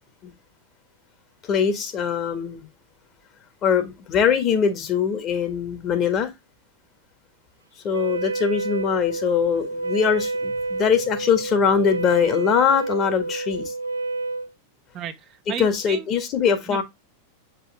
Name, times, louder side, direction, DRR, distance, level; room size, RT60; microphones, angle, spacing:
voice 1, 1.5-2.7 3.6-6.3 7.8-13.7 15.6-16.8, left 7 dB, 30° left, 1.9 m, -22 dB
Wind instrument woodwind instrument, 7.9-14.5, right 3 dB, 75° right, 0.4 m, -29 dB
voice 2, 14.9-16.1 16.7-16.8, right 9 dB, 35° right, 0.9 m, -34 dB
8.1 x 4.7 x 3.6 m
figure-of-eight pair, 90°, 0 cm